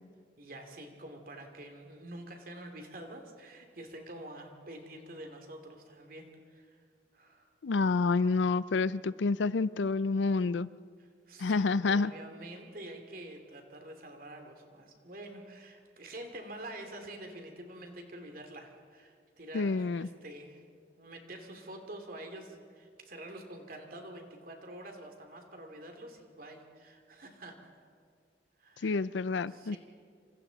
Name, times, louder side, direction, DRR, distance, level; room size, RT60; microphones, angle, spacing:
voice 1, 0.4-6.8 7.1-7.5 8.5-8.8 11.0-20.6 21.0-27.9 28.6-29.0 29.4-29.8, right 1 dB, 50° right, 4 dB, 2.7 m, -47 dB
voice 2, 7.6-10.7 11.4-12.1 19.5-20.1 28.8-29.8, left 4 dB, 80° left, 17 dB, 0.5 m, -28 dB
27.5 x 26.5 x 4.0 m, 2.1 s
head